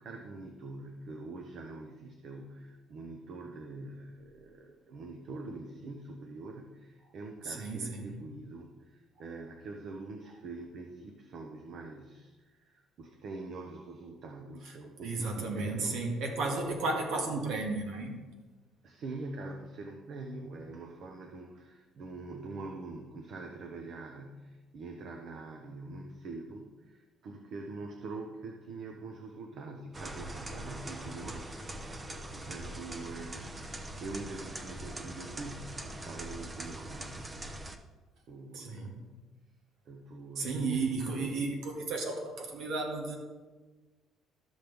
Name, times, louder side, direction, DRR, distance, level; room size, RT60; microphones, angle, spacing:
voice 1, 0.0-16.1 18.8-37.3 38.3-39.1 39.9-40.7, right 3 dB, 55° right, 3 dB, 0.9 m, -44 dB
voice 2, 7.4-8.1 15.0-18.2 38.5-39.0 40.4-43.2, right 3 dB, 75° right, 1 dB, 2.0 m, -33 dB
sound 1, 29.9-37.8, right 1 dB, 20° right, 0.7 m, -42 dB
13.0 x 6.2 x 3.5 m, 1.3 s
cardioid pair, 130°, 0 cm